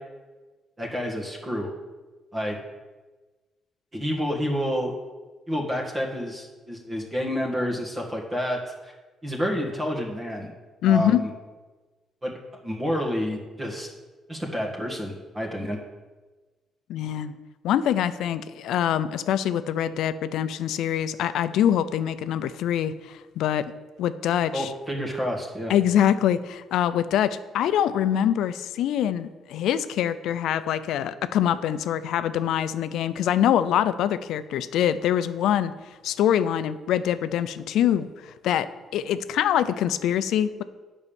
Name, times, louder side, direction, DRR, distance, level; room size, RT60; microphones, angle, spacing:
voice 1, 0.8-1.7 2.3-2.6 3.9-4.9 5.5-8.9 9.2-10.5 10.9-11.3 12.2-13.9 14.3-15.8 24.5-25.7, equal, 25° right, -1 dB, 1.7 m, -29 dB
voice 2, 10.8-11.2 16.9-17.3 17.6-23.7 24.0-24.7 25.7-35.7 36.0-38.7 38.9-40.6, left 10 dB, 85° left, 13 dB, 0.4 m, -24 dB
8.1 x 5.5 x 7.1 m, 1.2 s
cardioid pair, 90°, 0 cm